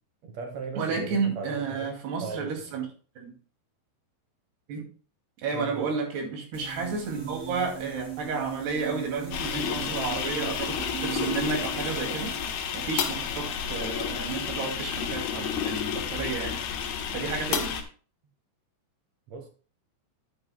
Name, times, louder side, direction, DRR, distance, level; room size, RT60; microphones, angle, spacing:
voice 1, 0.2-2.7 5.5-5.9 19.3-19.5, right 4 dB, 70° right, 1.6 m, -38 dB
voice 2, 0.8-2.9 3.2-3.3 4.7-4.9 5.4-17.7, right 5 dB, 85° right, 4.5 m, -32 dB
sound 1, 6.5-12.4, right 10 dB, 40° right, 3.9 m, -38 dB
sound 2, 9.3-17.8, left 8 dB, 85° left, 3.1 m, -31 dB
10.5 x 10.0 x 2.2 m
omnidirectional pair, 4.5 m